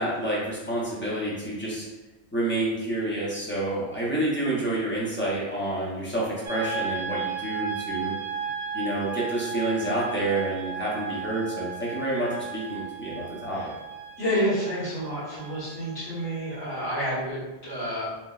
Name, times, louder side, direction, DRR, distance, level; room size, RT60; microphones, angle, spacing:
voice 1, 0.0-1.9 2.3-8.1 8.7-13.7, right 1 dB, 15° left, -6 dB, 0.4 m, -28 dB
sound 1, 6.4-17.3, right 6 dB, 55° right, 0.8 m, -35 dB
voice 2, 14.2-18.1, equal, 65° left, -9 dB, 1.4 m, -29 dB
3.2 x 2.0 x 2.3 m, 1.1 s
omnidirectional pair, 1.2 m